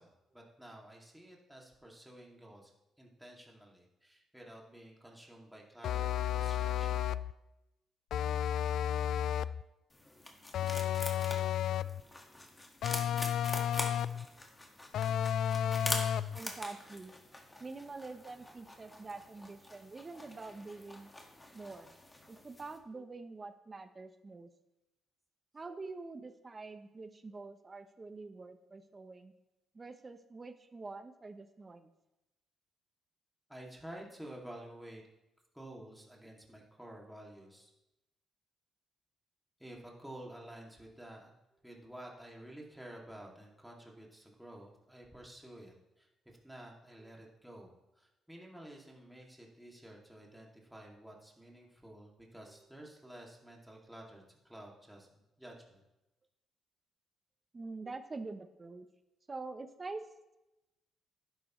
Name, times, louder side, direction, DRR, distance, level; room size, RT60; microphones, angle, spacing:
voice 1, 0.0-2.7 3.0-7.1 33.5-35.0 35.5-37.7 39.6-41.3 41.6-55.8, right 1 dB, 5° right, -2 dB, 2.4 m, -51 dB
sound 1, 5.8-7.3 8.1-9.6 10.5-12.0 12.8-14.3 14.9-16.4, left 10 dB, 70° left, 0.3 m, -32 dB
sound 2, 9.9-22.8, left 1 dB, 20° left, 1.8 m, -44 dB
voice 2, 16.3-17.1 17.6-21.1 21.5-21.9 22.3-24.5 25.5-29.3 29.7-31.9 47.0-47.1 57.5-58.9 59.3-60.1, right 3 dB, 30° right, 9 dB, 0.8 m, -46 dB
11.5 x 10.5 x 3.2 m, 0.95 s
cardioid pair, 90°, 0 cm